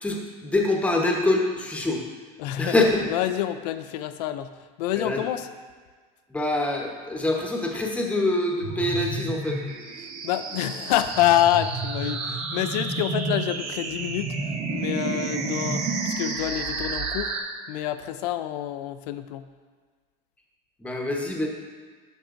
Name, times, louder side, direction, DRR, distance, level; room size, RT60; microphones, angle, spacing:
voice 1, 0.0-2.0 2.6-3.1 5.0-5.2 6.3-9.6 20.8-21.5, left 2 dB, 5° left, 0 dB, 0.9 m, -25 dB
voice 2, 2.4-2.7 3.1-4.5 4.8-5.5 10.2-14.4 14.7-17.3 17.7-19.5, left 12 dB, 90° left, 10 dB, 0.4 m, -27 dB
sound 1, 8.6-17.4, right 3 dB, 70° right, 1.5 m, -30 dB
12.0 x 5.8 x 2.5 m, 1.5 s
supercardioid pair, 145°, 20 cm